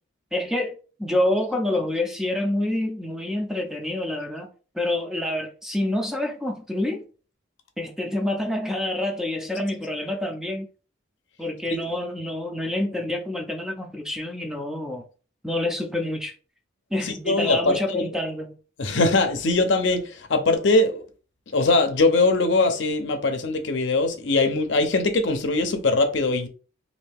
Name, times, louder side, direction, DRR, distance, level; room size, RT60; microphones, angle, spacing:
voice 1, 0.3-4.5 4.7-7.0 7.8-10.7 11.4-15.0 15.4-16.3 16.9-18.6, left 1 dB, ahead, 0.4 m, -27 dB
voice 2, 17.0-18.1 18.8-21.0 21.5-26.5, left 2 dB, 65° left, 0.6 m, -21 dB
3.2 x 2.6 x 3.4 m
head